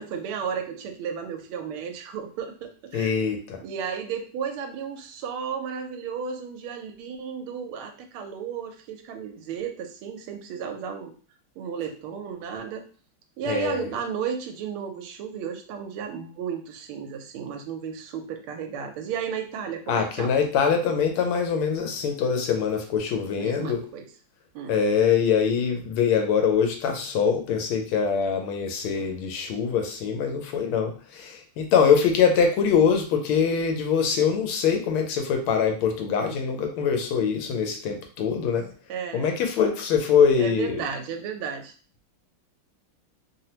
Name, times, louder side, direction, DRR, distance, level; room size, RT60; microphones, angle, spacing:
voice 1, 0.0-3.1 3.6-11.1 11.6-12.8 13.4-20.3 23.4-24.0 24.5-24.7 38.9-39.4 40.4-41.7, right 7 dB, 85° right, 5 dB, 1.5 m, -33 dB
voice 2, 2.9-3.6 13.5-13.9 19.9-23.8 24.7-38.7 39.1-40.8, left 6 dB, 90° left, 4 dB, 1.5 m, -23 dB
3.6 x 2.0 x 2.8 m, 0.39 s
omnidirectional pair, 2.4 m